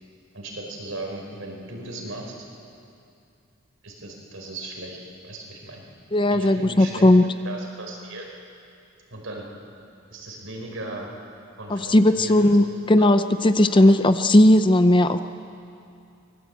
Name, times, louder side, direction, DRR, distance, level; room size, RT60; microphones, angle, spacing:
voice 1, 0.3-2.3 3.8-5.0 5.2-5.8 6.3-7.1 7.4-8.3 9.1-9.5 10.1-11.1 11.6-12.6 13.0-13.1 13.8-14.0, right 2 dB, 70° right, 0 dB, 4.8 m, -37 dB
voice 2, 6.1-7.2 11.7-15.2, left 1 dB, 25° left, 10 dB, 0.6 m, -17 dB
24.5 x 19.5 x 8.2 m, 2.6 s
head